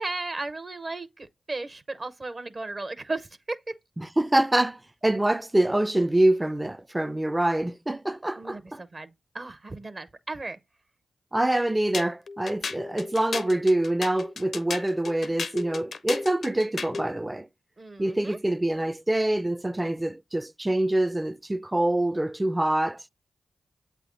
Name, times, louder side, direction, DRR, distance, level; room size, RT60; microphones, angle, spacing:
voice 1, 0.0-3.7 8.4-10.6 17.8-18.4, right 2 dB, 50° right, 0.8 m, -35 dB
voice 2, 4.0-8.8 11.3-17.5 18.0-23.0, right 1 dB, 20° right, 0.4 m, -25 dB
sound 1, 11.9-17.1, left 4 dB, 75° left, 0.6 m, -34 dB
8.0 x 3.4 x 3.8 m
cardioid pair, 40°, 0 cm